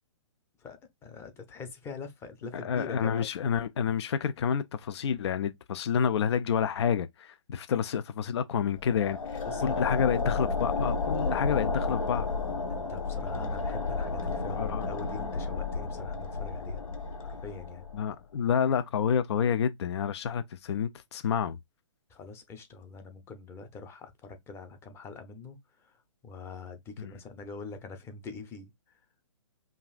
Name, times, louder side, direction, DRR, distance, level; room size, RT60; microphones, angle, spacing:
voice 1, 0.6-3.3 9.5-10.0 12.7-16.8 17.2-17.8 22.1-29.0, left 4 dB, 15° left, 0.7 m, -44 dB
voice 2, 2.5-12.3 14.5-14.9 17.9-21.6 27.0-27.1, left 7 dB, 55° left, 0.4 m, -29 dB
sound 1, 8.7-18.1, left 4 dB, 80° left, 1.1 m, -32 dB
5.3 x 2.4 x 2.4 m
figure-of-eight pair, 130°, 17 cm